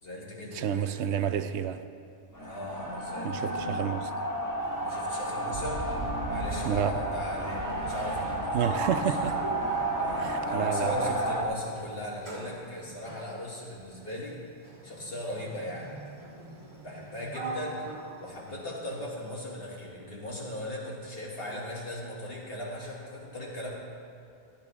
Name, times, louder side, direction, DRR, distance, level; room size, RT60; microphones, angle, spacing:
voice 1, 0.0-1.2 2.4-3.7 4.8-5.9 6.3-9.1 10.0-14.4 14.8-16.2 16.8-17.8 18.2-23.7, left 1 dB, 60° left, -4 dB, 2.5 m, -38 dB
voice 2, 0.5-1.8 3.2-4.1 6.6-6.9 8.5-9.4 10.1-11.1, right 9 dB, 80° right, 11 dB, 0.9 m, -30 dB
sound 1, 2.4-11.4, right 1 dB, 15° left, 1.3 m, -32 dB
Sliding door, 4.6-6.2 8.1-8.3 8.6-11.0 11.6-19.1, right 2 dB, 25° right, 1.7 m, -43 dB
Boom, 5.5-12.1, right 4 dB, 55° right, 0.9 m, -41 dB
17.5 x 10.5 x 3.6 m, 2.6 s
omnidirectional pair, 1.1 m